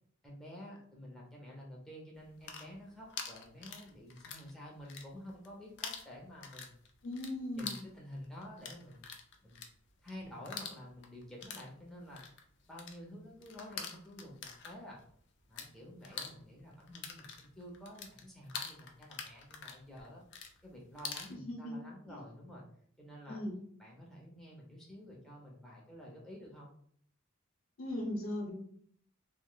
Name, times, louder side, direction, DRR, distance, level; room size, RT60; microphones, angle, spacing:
voice 1, 0.2-6.7 7.5-9.1 9.4-9.6 10.0-12.2 12.7-15.0 15.5-20.2 20.6-22.6 23.0-23.4 23.8-26.7, equal, ahead, -3 dB, 0.5 m, -50 dB
sound 1, 2.2-4.5 4.8-5.5 5.8-15.7 16.0-21.3, left 6 dB, 60° left, 0.4 m, -45 dB
voice 2, 7.0-7.8 21.3-21.7 22.1-22.2 23.3-23.6 27.8-28.5, left 1 dB, 80° left, -1 dB, 0.8 m, -38 dB
2.5 x 2.0 x 3.8 m, 0.62 s
head